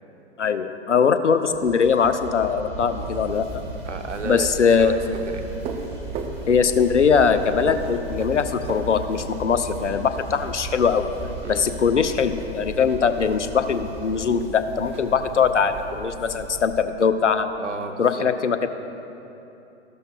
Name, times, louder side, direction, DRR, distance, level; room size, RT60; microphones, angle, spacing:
voice 1, 0.4-3.6 4.2-4.9 6.5-11.1 11.5-17.5 18.0-18.7, left 6 dB, 85° left, 10 dB, 0.7 m, -21 dB
sound 1, 1.4-16.2, left 1 dB, 5° left, 1.5 m, -39 dB
sound 2, 2.7-16.8, right 5 dB, 15° right, 0.5 m, -37 dB
voice 2, 3.8-5.4 11.4-11.6 17.6-18.3, right 3 dB, 90° right, 6 dB, 0.9 m, -33 dB
14.0 x 12.0 x 2.3 m, 2.9 s
figure-of-eight pair, 115°, 35 cm